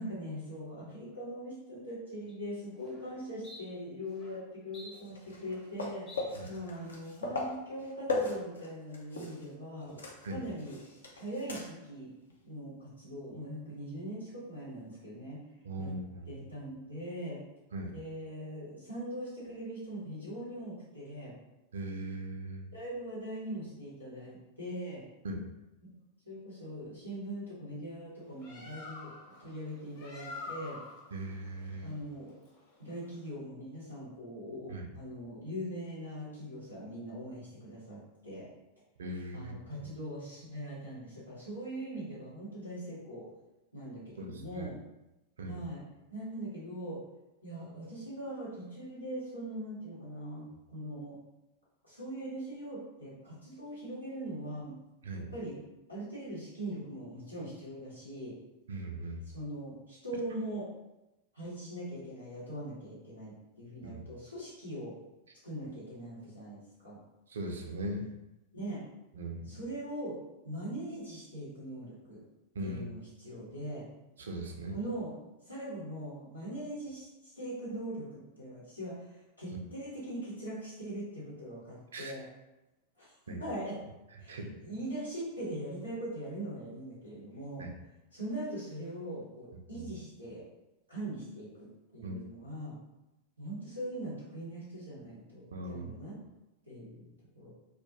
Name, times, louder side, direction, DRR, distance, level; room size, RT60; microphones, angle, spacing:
voice 1, 0.0-9.9 10.3-10.8 11.2-12.1 12.4-15.4 15.8-15.9 16.3-17.4 17.9-21.3 22.7-25.0 26.2-29.1 29.4-30.8 31.8-32.3 32.8-38.5 39.3-43.3 43.7-44.8 45.5-45.8 46.1-47.0 47.4-51.2 51.8-54.7 55.3-55.6 55.9-58.4 59.3-60.7 61.3-64.9 65.4-67.0 68.5-68.8 69.4-70.2 70.4-72.2 72.6-73.8 74.7-75.1 75.4-82.2 83.0-83.8 84.2-87.7 88.1-90.4 90.9-91.7 91.9-92.7 93.4-96.2 96.6-97.1 97.3-97.5, right 1 dB, 85° left, -10 dB, 1.1 m, -41 dB
sound 1, 2.3-2.4 2.8-3.1 3.4-3.6 4.1-4.4 4.7-5.8 6.1-6.2 6.7-7.1, left 1 dB, 25° left, 0.7 m, -52 dB
sound 2, 4.9-9.5 9.8-11.9 12.3-12.4 14.9-15.0, left 2 dB, 70° left, 0.4 m, -38 dB
voice 2, 15.6-16.4 17.7-17.9 21.7-22.7 25.2-25.4 31.1-31.9 34.7-34.9 39.0-39.9 44.2-44.7 45.4-45.6 55.0-55.3 58.7-59.2 63.8-64.1 67.3-68.1 69.2-69.5 72.5-72.9 74.2-74.8 81.9-82.1 83.3-83.4 84.3-84.6 87.6-87.7 89.7-89.9 92.0-92.2 95.5-95.9, right 1 dB, 65° right, 3 dB, 0.3 m, -39 dB
Bird, 28.2-33.3, left 3 dB, 55° left, 1.1 m, -47 dB
2.2 x 2.1 x 2.7 m, 0.97 s
figure-of-eight pair, 90°, 0 cm